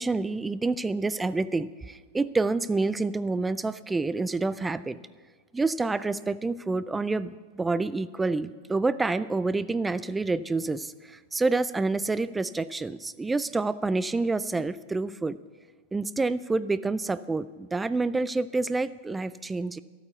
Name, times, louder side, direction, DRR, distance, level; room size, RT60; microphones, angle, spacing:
voice 1, 0.0-5.0 5.5-15.4 15.9-19.8, right 3 dB, 10° right, 16 dB, 0.3 m, -28 dB
12.0 x 9.1 x 6.8 m, 1.4 s
figure-of-eight pair, 90°, 0 cm